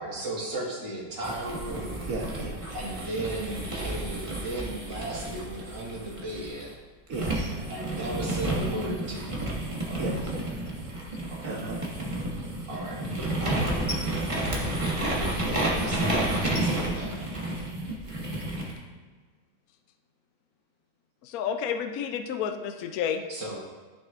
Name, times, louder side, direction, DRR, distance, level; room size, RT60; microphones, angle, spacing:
voice 1, 0.0-2.1 2.7-6.7 7.7-9.5 11.3-11.6 12.7-13.0 13.3-14.1 15.2-17.1 23.3-23.6, right 1 dB, 70° right, -3 dB, 2.4 m, -36 dB
sound 1, 1.2-6.6 7.1-18.7, right 1 dB, 20° right, 1.1 m, -31 dB
voice 2, 2.1-2.9 7.1-7.7 10.0-10.6 11.4-11.8, right 2 dB, 50° right, 0 dB, 1.3 m, -36 dB
voice 3, 21.2-23.2, left 8 dB, 70° left, 7 dB, 0.9 m, -30 dB
12.5 x 6.2 x 2.5 m, 1.4 s
omnidirectional pair, 2.0 m